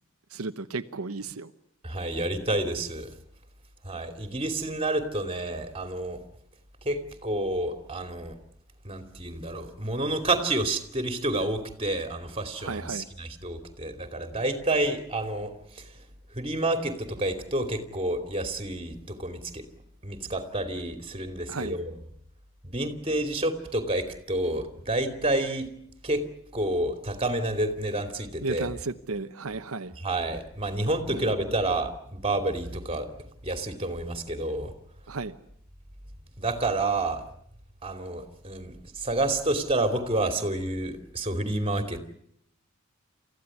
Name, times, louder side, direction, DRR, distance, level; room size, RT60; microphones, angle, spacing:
voice 1, 0.3-1.5 12.6-13.1 21.5-21.8 28.4-29.9 31.1-31.3 35.1-35.3, right 3 dB, 90° right, 9 dB, 1.0 m, -34 dB
voice 2, 1.8-3.1 3.8-6.2 6.8-8.4 8.8-15.9 16.3-19.6 20.0-21.9 22.6-25.7 26.0-26.3 26.5-28.7 30.0-33.1 33.4-34.7 36.4-37.2 37.8-42.0, right 2 dB, 25° right, 7 dB, 2.8 m, -29 dB
29.0 x 15.0 x 9.8 m, 0.73 s
head